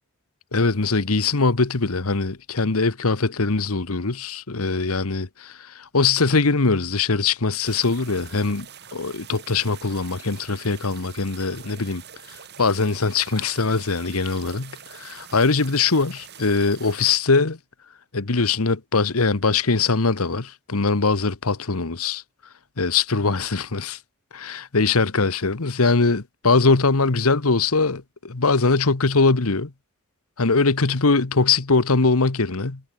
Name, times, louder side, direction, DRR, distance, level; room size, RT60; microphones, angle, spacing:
voice 1, 0.5-8.7 8.9-12.0 12.6-17.6 18.1-22.2 22.8-24.0 24.3-29.7 30.4-32.8, left 4 dB, 80° left, 1.3 m, -21 dB
sound 1, 7.6-17.2, right 8 dB, 50° right, 6.4 m, -44 dB
head